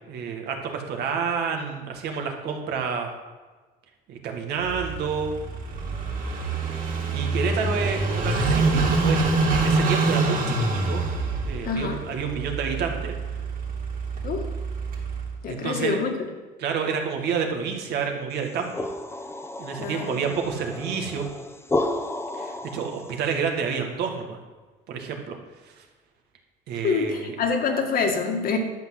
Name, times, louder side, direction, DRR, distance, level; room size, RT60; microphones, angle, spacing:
voice 1, 0.1-3.1 4.1-5.3 7.1-11.0 11.4-13.1 15.5-16.0 16.6-18.9 19.6-21.3 22.3-24.4 24.9-25.4 25.6-25.7 26.7-27.4, right 6 dB, 75° right, 3 dB, 2.1 m, -29 dB
Car passing by / Idling, 4.7-15.3, right 3 dB, 55° right, 3.2 m, -26 dB
voice 2, 11.7-12.0 14.2-14.5 15.4-16.3 19.8-20.3 26.8-28.6, left 5 dB, 60° left, 3 dB, 2.0 m, -26 dB
sound 1, 18.4-23.3, left 2 dB, 15° left, 0.9 m, -32 dB
11.5 x 6.3 x 7.9 m, 1.3 s
cardioid pair, 110°, 17 cm